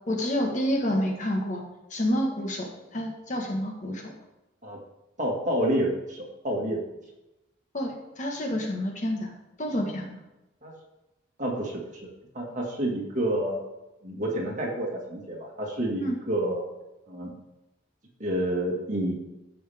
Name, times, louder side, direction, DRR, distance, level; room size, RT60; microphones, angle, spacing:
voice 1, 0.1-1.6 1.9-4.1 7.7-9.3 9.6-10.2 16.0-16.2, equal, 40° left, 1 dB, 1.4 m, -28 dB
voice 2, 5.2-6.8 10.6-10.7 11.4-12.1 12.3-13.6 14.0-16.6 17.1-17.3 18.2-19.1, right 1 dB, 40° right, -2 dB, 2.0 m, -29 dB
14.0 x 5.6 x 3.5 m, 0.97 s
head